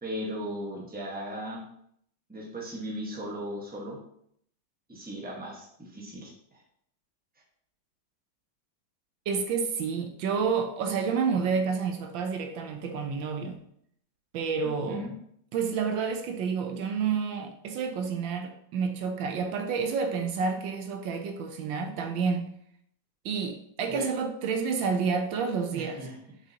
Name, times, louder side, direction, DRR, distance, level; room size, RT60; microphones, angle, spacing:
voice 1, 0.0-1.6 2.3-4.0 4.9-6.3 14.6-15.1 23.9-24.1 25.7-26.1, equal, 5° right, 1.2 m, -37 dB
voice 2, 9.3-13.6 14.3-15.1 15.5-22.6 23.2-26.1, right 5 dB, 75° right, 1.4 m, -29 dB
6.3 x 6.2 x 2.9 m
omnidirectional pair, 2.1 m